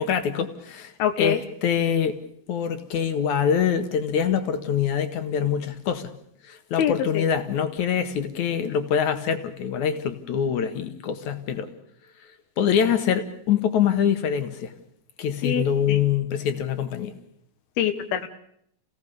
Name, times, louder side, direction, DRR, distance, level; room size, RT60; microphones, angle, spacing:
voice 1, 0.0-2.2 2.5-6.1 6.5-11.7 12.6-14.7 15.2-17.2, left 8 dB, 60° left, 9 dB, 2.8 m, -24 dB
voice 2, 1.0-1.4 6.8-7.2 15.4-16.0 17.8-18.3, left 9 dB, 80° left, 7 dB, 3.2 m, -25 dB
29.0 x 17.0 x 6.8 m, 0.70 s
omnidirectional pair, 4.4 m